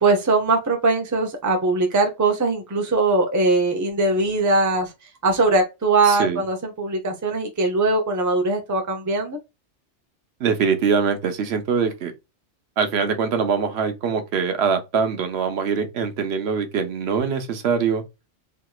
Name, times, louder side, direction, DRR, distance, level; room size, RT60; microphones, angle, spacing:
voice 1, 0.0-4.9 5.2-9.4, right 3 dB, 20° right, 0.6 m, -21 dB
voice 2, 6.1-6.4 10.4-12.1 12.8-18.0, right 6 dB, 70° right, 1.0 m, -23 dB
3.3 x 2.9 x 2.3 m
omnidirectional pair, 1.2 m